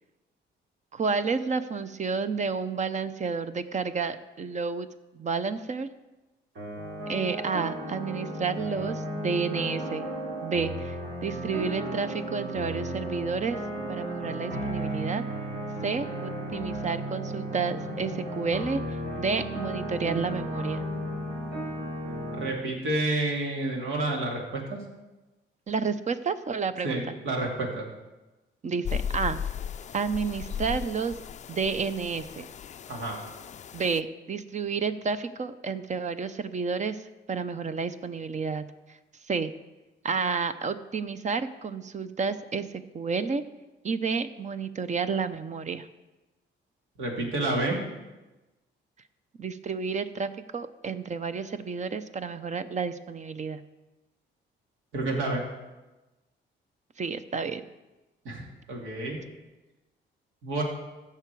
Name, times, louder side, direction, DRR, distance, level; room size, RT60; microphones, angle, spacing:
voice 1, 0.9-4.9 5.1-5.9 7.0-10.1 10.4-13.6 13.9-15.2 15.8-18.8 19.2-20.8 25.7-27.0 28.6-29.4 29.9-31.2 31.5-32.5 33.7-37.0 37.3-38.6 38.9-39.0 39.3-39.5 40.0-42.7 42.9-43.4 43.8-45.9 49.4-53.6 57.0-57.6, right 5 dB, 35° right, 12 dB, 0.6 m, -30 dB
sound 1, 6.6-22.5, right 1 dB, 65° right, 4.3 m, -34 dB
voice 2, 22.3-24.8 26.8-27.8 32.9-33.2 47.0-47.8 54.9-55.4 58.2-59.2 60.4-60.6, right 2 dB, 85° right, 0 dB, 2.6 m, -29 dB
sound 2, 28.9-34.0, left 8 dB, 40° left, 0.4 m, -36 dB
15.0 x 5.8 x 4.7 m, 1.1 s
cardioid pair, 90°, 20 cm